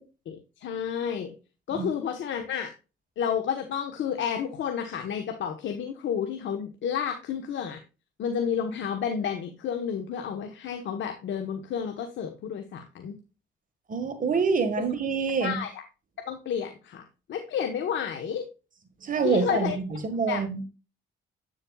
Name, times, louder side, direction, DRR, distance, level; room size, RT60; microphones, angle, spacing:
voice 1, 0.3-1.3 1.7-2.7 3.2-7.8 8.2-13.1 15.4-15.7 16.3-17.0 17.3-18.4 19.2-19.8 20.3-20.7, left 7 dB, 70° left, 1.2 m, -31 dB
voice 2, 13.9-15.6 19.0-20.6, right 5 dB, 45° right, 1.7 m, -26 dB
8.5 x 7.4 x 2.3 m
cardioid pair, 90°, 20 cm